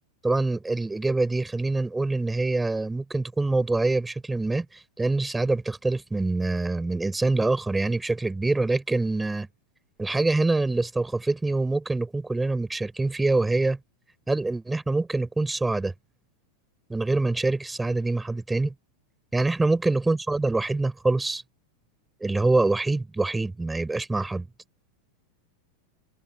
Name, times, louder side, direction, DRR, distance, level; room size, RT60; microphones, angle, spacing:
voice 1, 0.2-9.5 10.0-13.8 14.3-15.9 16.9-18.7 19.3-21.4 22.2-24.5, right 2 dB, 10° right, 5.8 m, -25 dB
figure-of-eight pair, 90°, 0 cm